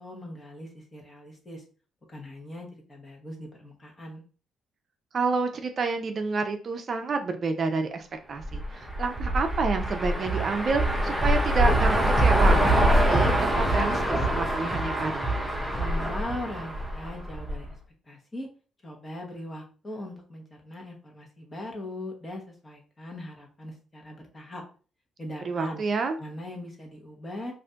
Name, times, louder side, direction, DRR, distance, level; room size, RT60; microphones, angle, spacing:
voice 1, 0.0-1.6 2.1-4.2 15.7-17.7 18.1-18.5 18.8-24.6 25.2-25.8 26.2-27.5, left 1 dB, 25° left, 1 dB, 1.0 m, -40 dB
voice 2, 5.1-12.6 12.9-15.3 25.4-26.2, right 4 dB, 50° right, 6 dB, 0.4 m, -29 dB
sound 1, 8.4-17.7, right 1 dB, 5° right, 0.6 m, -24 dB
2.6 x 2.5 x 3.3 m, 0.38 s
cardioid pair, 90°, 0 cm